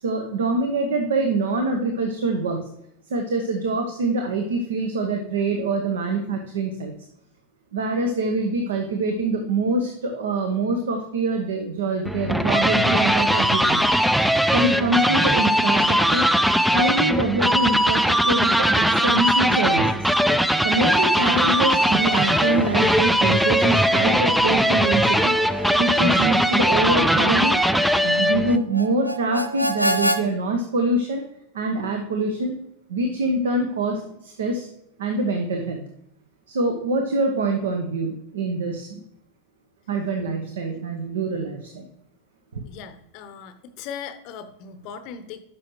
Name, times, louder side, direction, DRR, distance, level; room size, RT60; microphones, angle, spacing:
voice 1, 0.0-2.6 3.1-6.9 7.7-13.8 14.5-16.3 16.7-19.9 20.6-25.4 25.8-27.6 28.0-31.2 31.5-32.5 32.9-34.7 35.0-35.8 36.5-39.0 39.9-41.9 42.5-42.6, right 2 dB, 60° right, 4 dB, 0.9 m, -25 dB
sound 1, 12.0-28.6, equal, ahead, 0.4 m, -20 dB
Harmonica, 20.7-30.2, right 1 dB, 90° right, 0.5 m, -31 dB
voice 2, 42.7-45.4, left 7 dB, 40° left, 11 dB, 0.7 m, -38 dB
10.5 x 6.3 x 3.1 m, 0.79 s
figure-of-eight pair, 90°, 0 cm